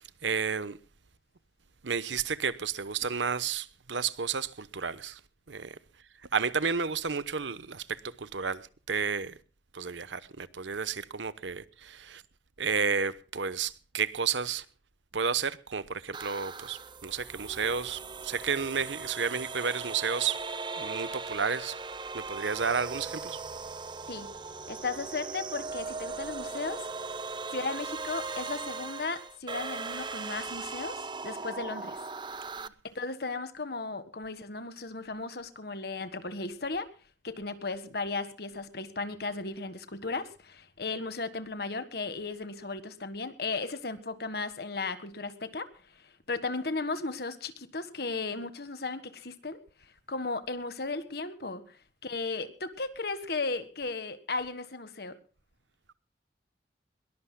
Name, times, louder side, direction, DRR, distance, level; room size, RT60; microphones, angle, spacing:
voice 1, 0.2-0.8 1.8-5.2 5.5-5.7 6.3-9.3 9.7-12.2 12.6-14.6 15.1-20.4 20.8-21.8 22.1-23.4, right 6 dB, 90° right, 1.0 m, -31 dB
sound 1, 16.1-32.7, right 4 dB, 25° right, 0.7 m, -39 dB
voice 2, 24.7-26.9 27.5-32.0 32.8-36.9 37.2-55.2, left 3 dB, 60° left, 1.6 m, -36 dB
21.5 x 20.0 x 2.3 m
head